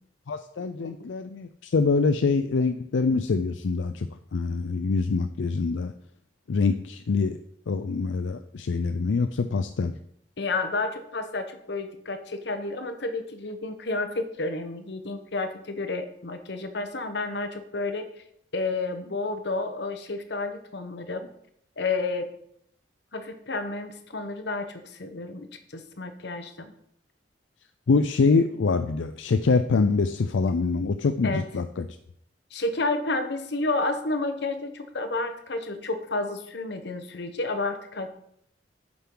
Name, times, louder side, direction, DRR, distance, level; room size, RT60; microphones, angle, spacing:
voice 1, 0.3-5.9 6.5-7.4 7.7-9.9 27.9-31.9, left 4 dB, 85° left, 9 dB, 0.4 m, -25 dB
voice 2, 0.8-1.1 10.4-18.1 18.5-21.3 21.8-22.3 23.1-26.7 31.2-31.5 32.5-38.1, left 3 dB, 65° left, 8 dB, 1.0 m, -31 dB
8.9 x 7.0 x 3.8 m, 0.70 s
head